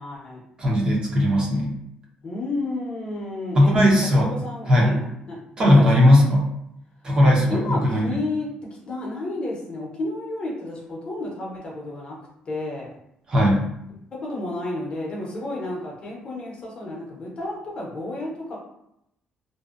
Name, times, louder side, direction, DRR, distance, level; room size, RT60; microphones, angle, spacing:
voice 1, 0.0-0.4 2.2-5.9 6.1-6.3 7.5-8.5 8.9-12.2 12.5-13.0 14.1-18.6, left 2 dB, 40° left, -3 dB, 0.7 m, -31 dB
voice 2, 0.6-1.7 3.6-4.3 4.7-4.9 5.6-6.4 7.0-8.1 13.3-13.6, left 1 dB, 30° right, -3 dB, 0.6 m, -17 dB
2.6 x 2.0 x 2.4 m, 0.78 s
cardioid pair, 145°, 3 cm